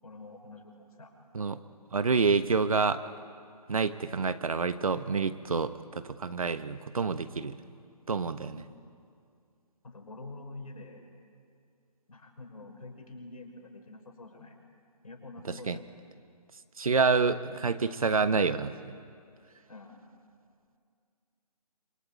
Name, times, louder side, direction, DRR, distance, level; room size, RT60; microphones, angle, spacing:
voice 1, 0.0-1.1 9.8-11.0 12.1-14.6 15.0-15.8 19.7-20.0, left 2 dB, 65° left, 2 dB, 5.8 m, -46 dB
voice 2, 1.9-3.0 3.7-7.6 8.1-8.6 15.5-15.8 16.8-18.7, right 4 dB, 60° right, 11 dB, 1.3 m, -28 dB
26.5 x 25.0 x 9.0 m, 2.3 s
figure-of-eight pair, 145°, 20 cm